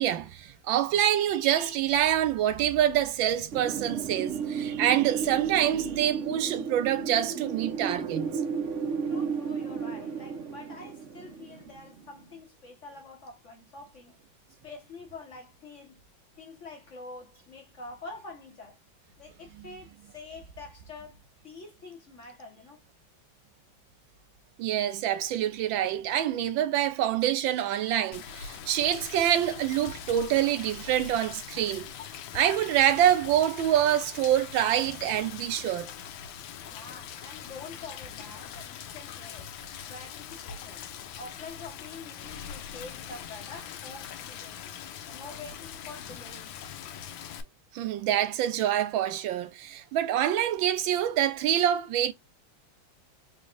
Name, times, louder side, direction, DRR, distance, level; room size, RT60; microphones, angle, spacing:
voice 1, 0.0-8.3 24.6-31.9 32.3-35.9 47.7-52.1, right 11 dB, 85° right, 1.4 m, -26 dB
Wind, 3.5-12.2, right 6 dB, 55° right, 0.8 m, -33 dB
voice 2, 9.1-14.1 14.6-16.0 16.4-18.8 19.2-21.2 21.4-22.8 36.7-39.5 39.8-40.8 41.2-44.7 45.1-46.6, left 3 dB, 45° left, 1.1 m, -46 dB
Rain, 28.1-47.4, left 8 dB, 85° left, 1.4 m, -42 dB
4.1 x 3.2 x 2.4 m
omnidirectional pair, 2.1 m